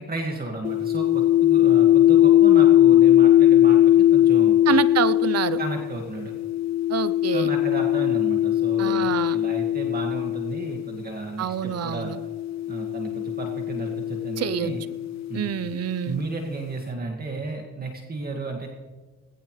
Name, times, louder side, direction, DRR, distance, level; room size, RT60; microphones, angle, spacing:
voice 1, 0.0-4.6 5.6-6.3 7.3-12.1 12.7-14.8 15.3-15.5 16.1-18.7, right 2 dB, 30° right, 1 dB, 2.1 m, -33 dB
sound 1, 0.6-11.0 11.9-15.7, left 13 dB, 65° left, 0.5 m, -20 dB
voice 2, 4.7-5.6 6.9-7.5 8.8-9.4 11.4-12.2 14.4-14.7 15.3-16.2, right 9 dB, 55° right, 16 dB, 0.8 m, -26 dB
19.5 x 16.5 x 3.3 m, 1.3 s
cardioid pair, 90°, 30 cm